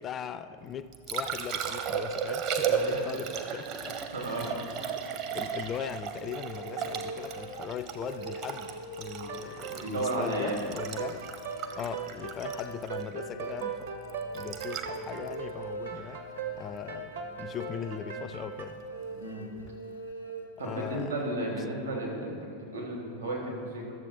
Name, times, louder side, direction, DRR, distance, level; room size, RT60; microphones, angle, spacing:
voice 1, 0.0-4.0 4.3-4.4 5.0-5.1 5.3-11.3 11.8-13.9 14.3-16.2 16.6-18.8 20.6-21.2, left 8 dB, 25° left, 13 dB, 0.3 m, -39 dB
Liquid, 0.7-16.8 19.6-19.7, right 7 dB, 40° right, 0.8 m, -35 dB
voice 2, 4.1-4.5 9.7-10.6 15.9-16.1 19.2-19.4 20.6-23.9, right 1 dB, 80° right, -3 dB, 2.8 m, -33 dB
sound 1, 6.1-21.0, right 1 dB, 80° left, 0.8 m, -44 dB
sound 2, 9.3-10.5 10.8-18.6, right 6 dB, 65° right, 1.0 m, -39 dB
12.0 x 7.3 x 4.2 m, 2.2 s
figure-of-eight pair, 90°, 0 cm